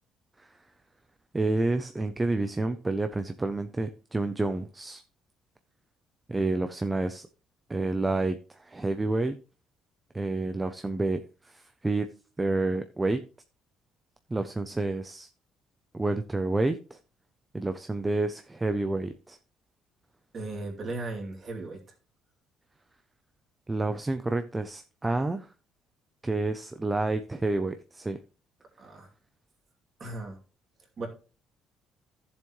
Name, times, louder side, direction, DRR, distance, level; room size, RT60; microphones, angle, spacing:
voice 1, 1.3-5.0 6.3-7.3 7.7-9.4 10.1-12.1 12.4-13.2 14.3-15.3 15.9-17.0 17.5-19.4 23.7-25.5 26.2-28.2, right 2 dB, 10° right, 9 dB, 0.5 m, -29 dB
voice 2, 20.3-21.8 28.8-29.1 30.0-30.4 31.0-31.1, right 2 dB, 30° right, 0 dB, 2.6 m, -36 dB
14.5 x 7.2 x 3.1 m, 0.35 s
cardioid pair, 170°, 0 cm